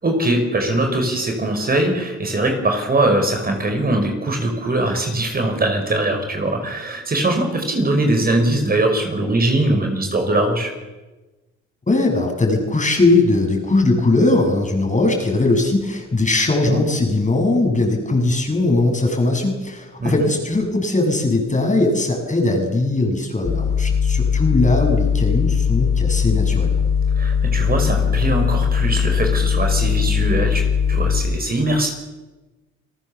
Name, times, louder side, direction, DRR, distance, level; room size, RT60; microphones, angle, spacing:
voice 1, 0.0-10.7 16.7-16.8 20.0-20.3 27.2-30.6 30.9-31.9, right 1 dB, 30° right, 4 dB, 5.8 m, -21 dB
voice 2, 11.9-26.8, left 2 dB, 25° left, 3 dB, 7.3 m, -19 dB
sound 1, 23.4-31.2, left 7 dB, 45° left, 7.0 m, -19 dB
29.5 x 18.5 x 7.3 m, 1.1 s
cardioid pair, 90°, 30 cm